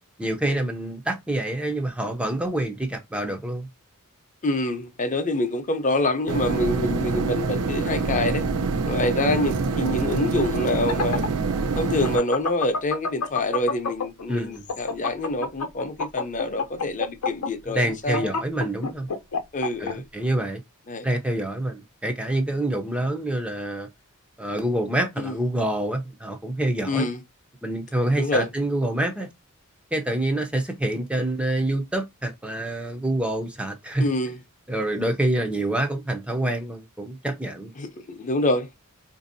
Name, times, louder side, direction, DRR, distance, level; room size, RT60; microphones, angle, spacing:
voice 1, 0.2-3.7 6.8-7.0 14.3-14.6 17.6-19.1 19.8-20.6 21.0-23.9 24.4-27.1 27.6-29.3 29.9-34.1 34.7-37.7, right 1 dB, 5° right, 0.5 m, -26 dB
voice 2, 4.4-8.4 8.8-11.2 11.8-18.3 19.5-20.0 20.9-21.1 25.2-25.3 26.9-27.2 28.2-28.5 34.0-34.4 37.8-38.7, left 2 dB, 35° left, 0.6 m, -26 dB
sound 1, 6.3-12.2, right 4 dB, 75° right, 0.5 m, -25 dB
sound 2, 10.6-14.2 14.6-19.9, left 4 dB, 80° left, 0.7 m, -27 dB
3.9 x 2.6 x 2.6 m
head